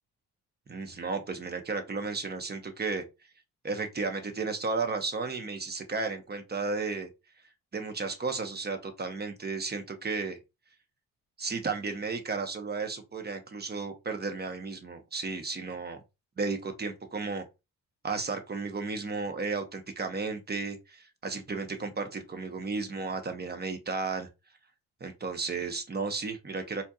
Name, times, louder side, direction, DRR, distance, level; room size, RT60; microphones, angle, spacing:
voice 1, 0.7-3.0 3.6-7.1 7.7-10.4 11.4-16.0 16.4-17.4 18.0-24.3 25.0-26.8, right 4 dB, 25° right, 1.0 m, -33 dB
4.3 x 2.8 x 2.4 m
cardioid pair, 75°, 37 cm